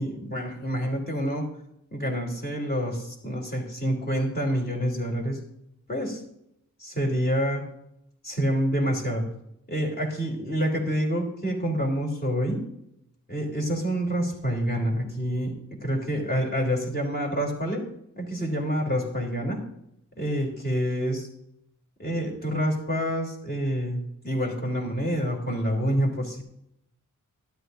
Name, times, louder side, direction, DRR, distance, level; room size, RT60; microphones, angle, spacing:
voice 1, 0.0-1.5 1.9-5.4 5.9-6.2 6.8-7.7 8.2-9.3 9.7-12.7 13.3-15.5 15.8-17.8 18.2-19.6 20.2-21.3 22.0-26.4, equal, 30° left, -1 dB, 3.4 m, -27 dB
12.5 x 12.0 x 2.6 m, 0.77 s
wide cardioid pair, 100°, 32 cm